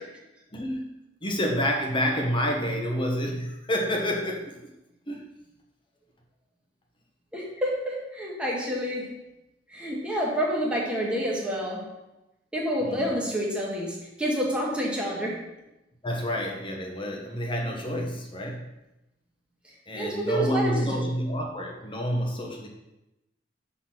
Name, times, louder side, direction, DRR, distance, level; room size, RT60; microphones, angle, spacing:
voice 1, 0.5-0.9 1.2-4.7 5.1-5.3 12.8-13.1 16.0-18.7 19.9-22.7, equal, 25° left, 1 dB, 1.1 m, -28 dB
voice 2, 7.3-9.1 9.7-11.9 12.5-15.4 19.6-21.1, equal, 5° right, -4 dB, 1.5 m, -28 dB
5.8 x 4.1 x 5.8 m, 0.94 s
head